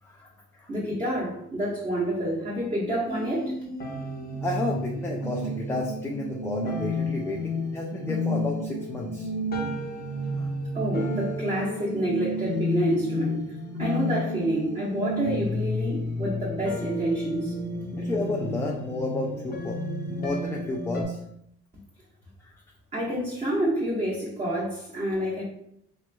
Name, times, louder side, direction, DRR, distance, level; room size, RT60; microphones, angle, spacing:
voice 1, 0.0-0.7 4.4-9.3 10.4-10.5 17.9-21.2 22.4-22.6, left 2 dB, 10° left, -1 dB, 0.3 m, -32 dB
voice 2, 0.7-3.5 10.7-13.4 13.8-17.5 22.9-25.4, right 1 dB, 25° right, -7 dB, 0.9 m, -28 dB
sound 1, 3.1-21.0, left 1 dB, 30° left, 0.7 m, -31 dB
3.0 x 3.0 x 2.2 m, 0.73 s
cardioid pair, 90°, 30 cm